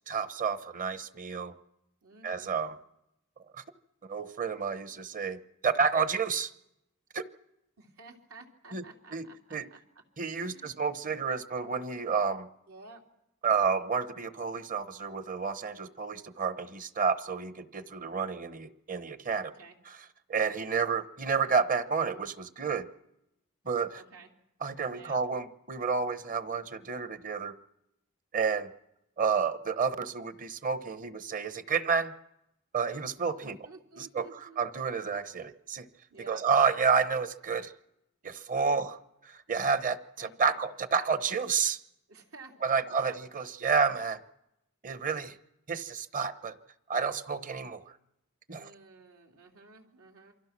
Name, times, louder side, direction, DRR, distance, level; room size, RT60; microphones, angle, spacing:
voice 1, 0.1-1.5 2.2-2.8 3.5-3.6 4.0-6.5 7.1-7.3 8.7-8.8 9.1-9.3 9.5-9.7 10.2-12.5 13.4-19.5 20.3-22.9 23.7-24.0 24.6-27.6 28.3-28.7 29.2-32.1 32.7-33.6 34.0-34.3 34.6-35.9 36.3-37.7 38.2-39.0 39.3-41.8 42.6-44.2 44.8-45.4 45.7-46.6 46.9-47.9 48.5-48.7, right 5 dB, 40° right, 13 dB, 1.0 m, -30 dB
voice 2, 2.0-2.7 7.8-9.8 10.4-10.7 12.7-13.0 19.5-19.8 24.0-24.3 24.9-25.2 33.3-34.6 36.1-36.4 38.6-38.8 40.2-40.6 42.1-43.2 48.5-50.3, right 3 dB, 80° right, 1 dB, 3.5 m, -52 dB
28.0 x 24.5 x 6.1 m, 0.86 s
head